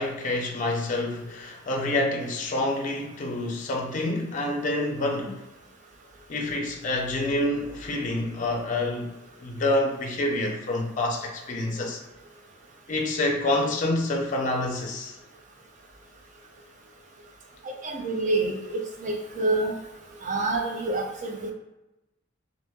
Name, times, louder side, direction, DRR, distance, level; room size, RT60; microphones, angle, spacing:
voice 1, 0.0-5.4 6.3-9.1 9.4-12.0 12.9-15.2, left 1 dB, 40° left, 0.4 m, -27 dB
voice 2, 17.8-19.7 20.2-21.5, right 2 dB, 40° right, 0.5 m, -27 dB
3.0 x 2.5 x 2.2 m
head